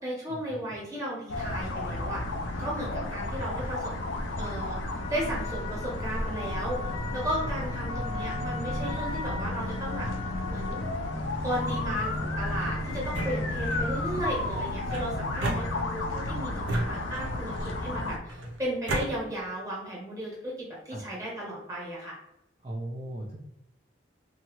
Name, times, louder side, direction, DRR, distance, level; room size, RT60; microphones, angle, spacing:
voice 1, 0.0-2.2 2.6-3.9 4.4-4.8 5.1-10.1 10.5-10.8 11.4-22.2, equal, 15° right, -5 dB, 1.0 m, -35 dB
sound 1, 1.3-18.2, left 2 dB, 80° left, 0.4 m, -32 dB
sound 2, 12.9-13.9 14.9-16.1 16.6-17.5 18.3-19.1, right 1 dB, 80° right, 0.6 m, -33 dB
voice 2, 15.1-15.6 20.9-21.0 22.6-23.4, right 1 dB, 30° right, -4 dB, 0.4 m, -37 dB
2.7 x 2.3 x 2.9 m, 0.86 s
head